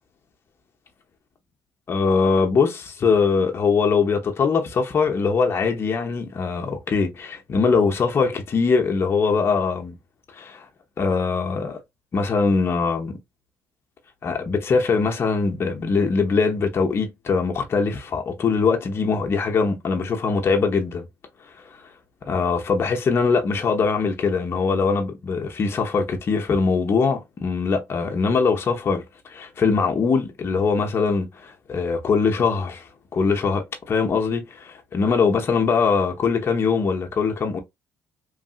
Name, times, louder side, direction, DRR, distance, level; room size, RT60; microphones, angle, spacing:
voice 1, 1.9-9.9 10.4-10.7 11.0-11.8 12.1-13.2 14.2-21.0 22.3-29.0 29.3-32.8 33.1-37.6, left 5 dB, 40° left, 0.9 m, -22 dB
3.2 x 2.6 x 2.5 m
cardioid pair, 90°, 6 cm